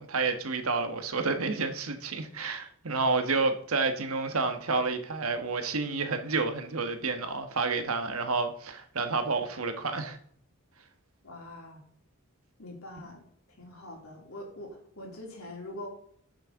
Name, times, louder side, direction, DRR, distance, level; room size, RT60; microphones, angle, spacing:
voice 1, 0.0-10.2 13.0-13.1, right 4 dB, 85° right, 1.3 m, -30 dB
voice 2, 11.2-11.8 12.6-13.2 13.6-15.9, left 1 dB, 80° left, 3.0 m, -43 dB
11.0 x 6.6 x 3.7 m
head